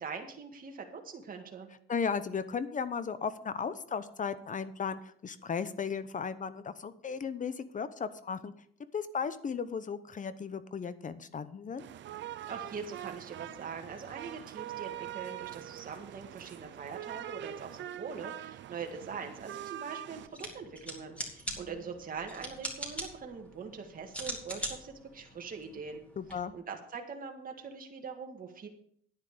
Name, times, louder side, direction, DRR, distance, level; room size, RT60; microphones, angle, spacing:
voice 1, 0.0-1.7 12.4-26.0 26.5-28.7, right 5 dB, 45° right, 2 dB, 2.0 m, -42 dB
voice 2, 1.9-8.5 8.9-11.8 26.2-26.5, left 6 dB, 40° left, 13 dB, 0.8 m, -35 dB
sound 1, 11.8-20.3, right 12 dB, 65° right, 0.6 m, -43 dB
sound 2, 20.2-26.3, right 1 dB, 5° left, 3.6 m, -42 dB
10.0 x 10.0 x 5.1 m, 0.63 s
cardioid pair, 90°, 20 cm